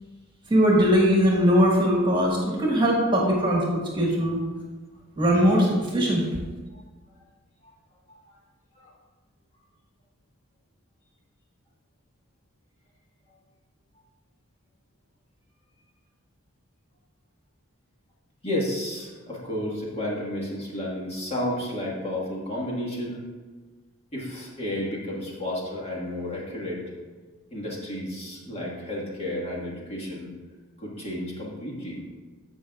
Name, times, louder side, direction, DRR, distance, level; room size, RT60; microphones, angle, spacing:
voice 1, 0.5-4.4 5.2-6.4, equal, 25° right, -3 dB, 1.6 m, -21 dB
voice 2, 18.4-23.3 24.1-26.9 27.5-30.3 30.8-32.0, left 1 dB, 30° left, -4 dB, 1.7 m, -32 dB
15.5 x 5.7 x 2.4 m, 1.3 s
head